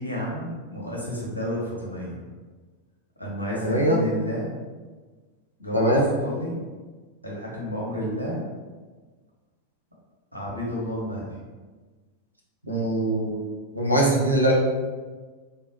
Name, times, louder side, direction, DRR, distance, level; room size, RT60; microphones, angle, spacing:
voice 1, 0.0-2.2 3.2-4.5 5.6-6.6 7.2-8.4 10.3-11.4, equal, 85° left, -5 dB, 1.0 m, -31 dB
voice 2, 3.6-4.0 5.7-6.1 12.7-14.5, right 1 dB, 90° right, -3 dB, 0.7 m, -22 dB
3.3 x 2.9 x 2.8 m, 1.3 s
figure-of-eight pair, 90°, 0 cm